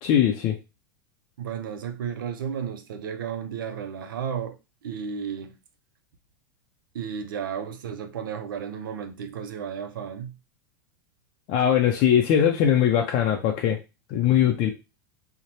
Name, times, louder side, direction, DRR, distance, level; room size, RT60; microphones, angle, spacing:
voice 1, 0.0-0.6 11.5-13.8 14.1-14.7, left 9 dB, 45° left, 0.4 m, -21 dB
voice 2, 1.4-5.6 6.9-10.4, right 7 dB, 85° right, 0.4 m, -33 dB
2.6 x 2.1 x 3.0 m
hypercardioid pair, 110°, 11 cm